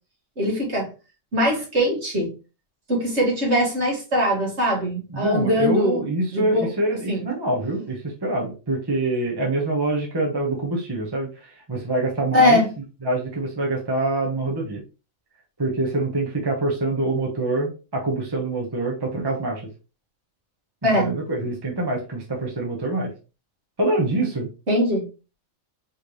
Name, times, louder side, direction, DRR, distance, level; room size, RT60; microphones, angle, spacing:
voice 1, 0.4-0.9 1.3-2.3 2.9-6.0 6.3-6.7 7.1-7.2 12.3-12.7 20.8-21.1 24.7-25.1, equal, 55° right, -2 dB, 2.3 m, -21 dB
voice 2, 5.1-12.6 13.0-14.8 15.6-19.6 20.9-23.1 23.8-24.5, right 2 dB, 20° right, -1 dB, 1.0 m, -25 dB
4.7 x 3.4 x 3.1 m, 0.31 s
omnidirectional pair, 1.4 m